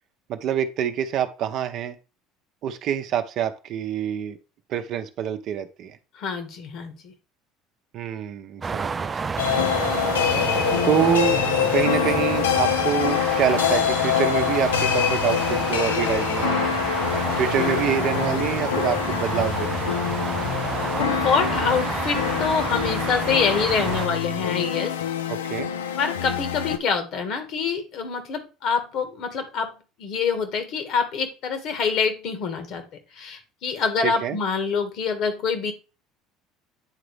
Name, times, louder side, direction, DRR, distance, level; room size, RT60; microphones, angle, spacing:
voice 1, 0.3-2.0 2.6-4.4 4.7-6.0 7.9-10.1 10.8-11.4 11.7-16.7 17.4-20.0 25.3-25.7 34.0-34.4, right 9 dB, 55° right, 8 dB, 0.7 m, -26 dB
voice 2, 6.1-7.1 20.9-24.9 26.0-29.7 30.0-32.8 33.1-35.7, left 5 dB, 60° left, 8 dB, 1.5 m, -26 dB
sound 1, 8.6-24.1, right 5 dB, 30° right, 0.3 m, -29 dB
sound 2, 9.4-26.8, left 9 dB, 85° left, 0.5 m, -25 dB
9.0 x 3.9 x 3.3 m, 0.32 s
hypercardioid pair, 70°, 0 cm